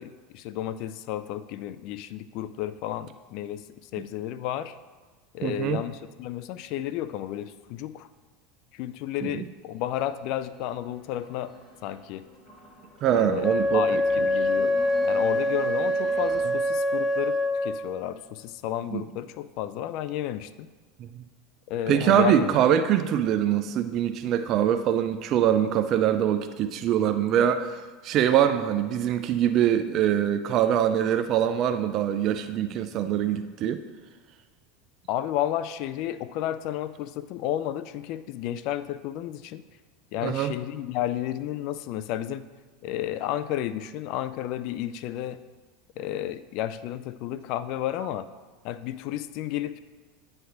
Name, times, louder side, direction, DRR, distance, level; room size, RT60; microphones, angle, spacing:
voice 1, 0.0-4.8 5.3-8.1 8.7-11.5 11.8-12.3 13.1-13.5 13.7-20.7 21.7-22.6 35.1-39.6 40.1-42.5 42.8-45.4 46.0-48.3 48.6-49.8, left 12 dB, 60° left, 14 dB, 0.3 m, -32 dB
voice 2, 5.4-5.8 9.2-9.4 13.0-14.0 18.9-19.0 21.0-21.2 21.9-33.8 40.2-40.5, right 10 dB, 50° right, 9 dB, 0.4 m, -24 dB
sound 1, 9.6-16.4, right 2 dB, 20° left, 2.3 m, -47 dB
Wind instrument woodwind instrument, 13.4-18.0, left 1 dB, 5° left, 0.7 m, -25 dB
9.1 x 3.3 x 5.8 m, 1.3 s
hypercardioid pair, 105°, 0 cm